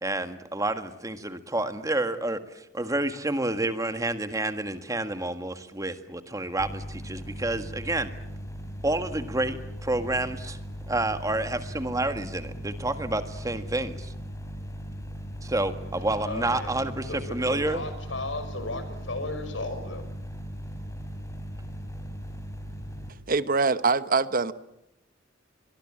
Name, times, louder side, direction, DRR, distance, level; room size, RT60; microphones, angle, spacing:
voice 1, 0.0-8.1 8.8-10.6 10.9-14.1 15.4-17.8, right 2 dB, 20° right, 9 dB, 1.7 m, -29 dB
sound 1, 6.6-23.1, equal, 15° left, 4.3 m, -38 dB
voice 2, 15.9-20.1, left 2 dB, 90° left, 10 dB, 5.6 m, -36 dB
voice 3, 23.3-24.5, right 4 dB, 50° right, 13 dB, 1.0 m, -23 dB
25.0 x 22.5 x 8.8 m, 0.84 s
head